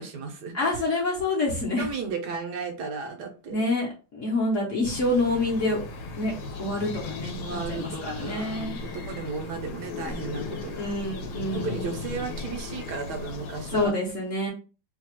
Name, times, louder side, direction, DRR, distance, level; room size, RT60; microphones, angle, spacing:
voice 1, 0.0-0.8 1.8-3.6 7.4-10.9 11.5-14.0, right 4 dB, 70° right, 4 dB, 1.2 m, -35 dB
voice 2, 0.5-1.9 3.5-5.8 6.2-6.3 6.6-8.8 10.7-11.8 13.7-14.5, left 2 dB, 50° left, -2 dB, 1.0 m, -27 dB
sound 1, 4.8-13.9, left 4 dB, 80° left, 1.4 m, -36 dB
3.2 x 2.3 x 4.3 m, 0.36 s
omnidirectional pair, 2.0 m